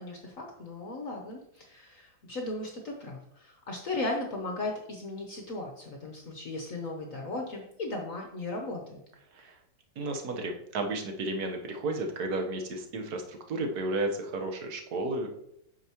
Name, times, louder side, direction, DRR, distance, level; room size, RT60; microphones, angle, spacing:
voice 1, 0.0-9.0, left 2 dB, 50° left, 1 dB, 1.2 m, -36 dB
voice 2, 10.0-15.3, right 2 dB, 55° right, 3 dB, 1.5 m, -33 dB
8.8 x 6.4 x 3.0 m, 0.76 s
omnidirectional pair, 2.1 m